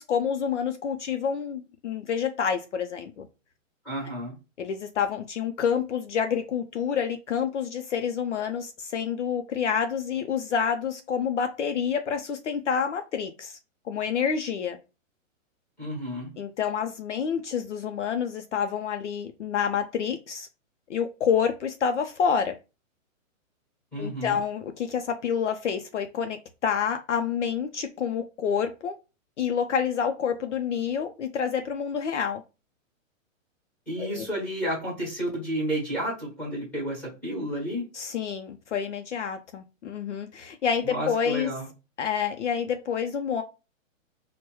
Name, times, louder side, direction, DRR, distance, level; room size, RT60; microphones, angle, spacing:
voice 1, 0.0-3.3 4.6-13.6 13.9-14.8 16.4-20.5 20.9-22.5 24.0-28.9 29.4-32.4 34.0-34.3 37.9-41.5 42.0-43.4, left 7 dB, 60° left, 0.5 m, -28 dB
voice 2, 3.8-4.3 15.8-16.3 23.9-24.4 33.9-37.9 40.8-41.7, right 1 dB, 5° left, 1.1 m, -31 dB
4.6 x 2.2 x 3.0 m
hypercardioid pair, 180°, 40 cm